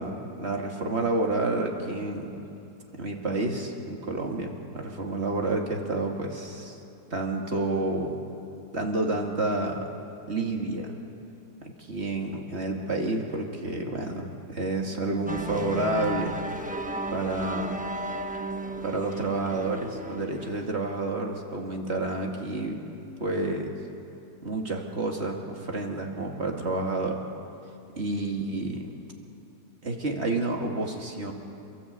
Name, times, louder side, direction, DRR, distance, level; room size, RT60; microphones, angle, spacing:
voice 1, 0.0-2.4 2.9-6.8 7.1-8.3 8.7-9.9 10.3-10.9 11.6-16.4 17.1-17.8 18.8-22.8 23.2-23.7 24.4-27.2 28.0-28.9 29.8-31.3, right 2 dB, 40° right, 1 dB, 2.4 m, -29 dB
sound 1, 15.3-20.7, right 1 dB, 5° right, 0.8 m, -34 dB
29.0 x 14.0 x 8.3 m, 2.8 s
omnidirectional pair, 1.8 m